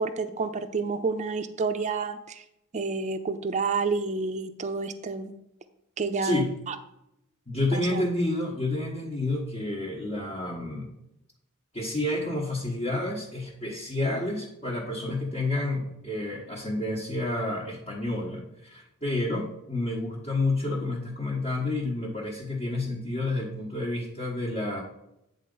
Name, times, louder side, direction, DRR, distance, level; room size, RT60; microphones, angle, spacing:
voice 1, 0.0-2.4 2.7-5.3 6.0-6.8 7.7-8.0, right 4 dB, 30° right, 8 dB, 0.5 m, -29 dB
voice 2, 7.5-10.9 11.7-24.8, left 2 dB, 30° left, -5 dB, 1.3 m, -29 dB
9.3 x 3.9 x 5.3 m, 0.83 s
head